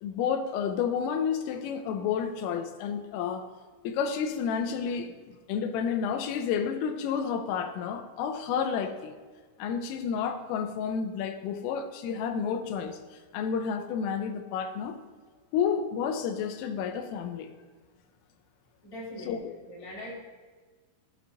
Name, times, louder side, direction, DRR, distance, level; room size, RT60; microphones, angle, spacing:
voice 1, 0.0-3.5 3.9-9.2 9.6-13.0 13.3-15.0 15.5-17.5 19.3-19.5, left 7 dB, 90° left, 7 dB, 3.4 m, -30 dB
voice 2, 18.8-20.2, left 1 dB, 40° left, -6 dB, 0.4 m, -42 dB
16.0 x 8.6 x 2.6 m, 1.4 s
omnidirectional pair, 5.7 m